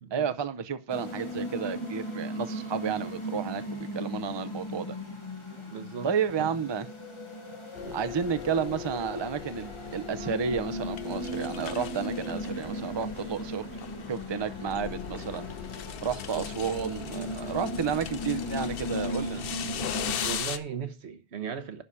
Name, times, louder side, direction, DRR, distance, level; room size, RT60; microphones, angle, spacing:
voice 1, 0.1-5.0 6.0-6.9 7.9-13.7 14.1-15.5 16.0-19.4, right 7 dB, 30° right, 0.6 m, -31 dB
sound 1, 0.9-20.4, equal, 25° left, 1.6 m, -37 dB
voice 2, 5.5-6.1 6.4-6.5 7.8-8.0 8.2-8.5 9.9-10.3 12.1-12.2 13.7-14.0 14.3-14.5 16.3-16.5 17.3-17.6 20.2-21.8, right 7 dB, 80° right, 1.3 m, -39 dB
sound 2, 7.7-20.6, left 8 dB, 60° left, 0.8 m, -38 dB
11.0 x 4.8 x 5.6 m
omnidirectional pair, 1.1 m